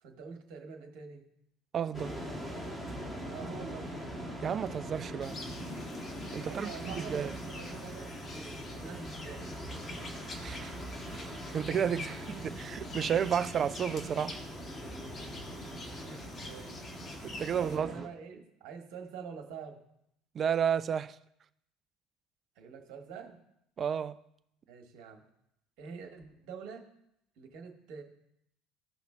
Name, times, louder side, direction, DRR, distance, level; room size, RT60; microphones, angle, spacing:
voice 1, 0.0-1.3 3.3-4.0 6.4-9.5 12.1-12.6 15.9-16.9 17.6-19.8 22.6-23.4 24.7-25.2 25.8-26.8 27.4-28.0, right 6 dB, 60° right, 1.4 m, -46 dB
voice 2, 1.7-2.2 4.4-5.4 6.3-7.3 10.3-10.8 11.1-12.2 12.6-14.4 17.2-18.1 20.3-21.2 23.8-24.2, right 8 dB, 40° right, 0.4 m, -32 dB
sound 1, 1.9-18.1, equal, 10° left, 1.9 m, -42 dB
sound 2, 5.2-17.8, left 2 dB, 30° left, 1.4 m, -47 dB
15.0 x 5.7 x 2.2 m
figure-of-eight pair, 60°, 0 cm